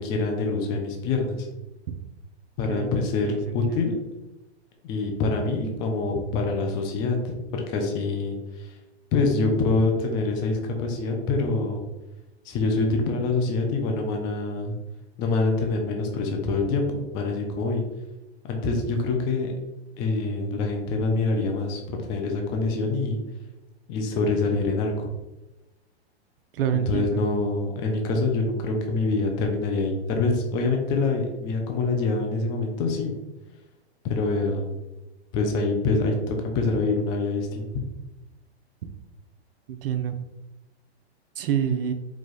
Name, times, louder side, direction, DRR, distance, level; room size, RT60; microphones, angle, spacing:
voice 1, 0.0-1.5 2.6-4.0 4.8-8.7 9.1-11.9 12.5-14.8 15.2-17.8 18.4-19.5 20.0-23.2 23.9-25.1 26.7-33.2 34.0-34.8 35.3-37.7, left 3 dB, 15° left, 2 dB, 0.3 m, -25 dB
voice 2, 26.5-27.3 39.7-40.2 41.4-41.9, right 9 dB, 55° right, 8 dB, 0.6 m, -26 dB
4.8 x 2.2 x 4.0 m, 1.0 s
hypercardioid pair, 140°, 33 cm